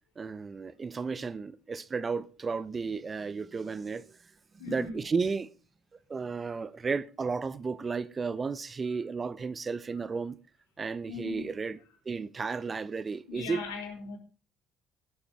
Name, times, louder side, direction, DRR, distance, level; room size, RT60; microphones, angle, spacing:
voice 1, 0.2-4.0 4.5-5.5 6.1-10.4 10.8-11.8 12.1-13.6, right 4 dB, 30° right, 0.8 m, -33 dB
voice 2, 4.6-5.0 11.1-11.5 13.3-14.2, left 5 dB, 75° left, 3.7 m, -39 dB
16.0 x 12.5 x 3.4 m
figure-of-eight pair, 55°, 0 cm